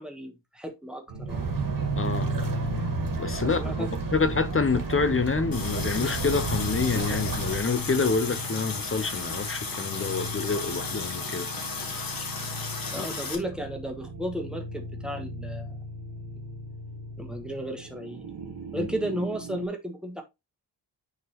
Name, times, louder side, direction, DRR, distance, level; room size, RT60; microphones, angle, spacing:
voice 1, 0.0-1.5 3.4-3.9 12.9-15.8 17.2-18.3 18.7-20.2, equal, ahead, 1.2 m, -34 dB
sound 1, 1.1-19.7, right 1 dB, 75° right, 1.8 m, -36 dB
sound 2, 1.3-7.6, right 3 dB, 50° right, 1.8 m, -33 dB
voice 2, 2.0-2.3 3.2-11.5 13.0-13.1 18.7-18.9, left 4 dB, 30° left, 0.5 m, -27 dB
Water tap faucet, 5.5-13.4, left 4 dB, 50° left, 1.6 m, -34 dB
9.5 x 3.6 x 3.0 m
wide cardioid pair, 155°, 43 cm